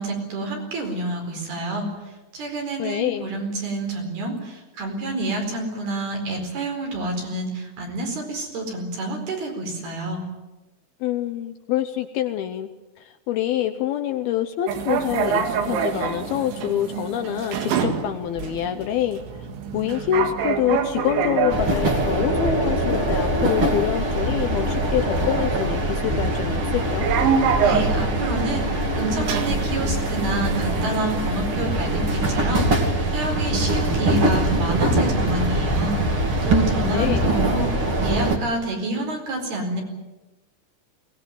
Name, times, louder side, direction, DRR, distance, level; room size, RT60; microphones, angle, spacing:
voice 1, 0.0-1.9 2.3-10.2 27.6-39.8, right 2 dB, 60° right, 2 dB, 6.5 m, -28 dB
voice 2, 2.8-3.3 11.0-12.7 13.0-19.2 19.7-27.1 36.9-37.2, left 11 dB, 75° left, 8 dB, 2.4 m, -26 dB
sound 1, 14.7-32.2, right 6 dB, 85° right, 4.3 m, -28 dB
sound 2, 21.5-38.4, right 1 dB, 35° right, 2.8 m, -23 dB
22.0 x 19.0 x 9.3 m, 1.1 s
omnidirectional pair, 5.1 m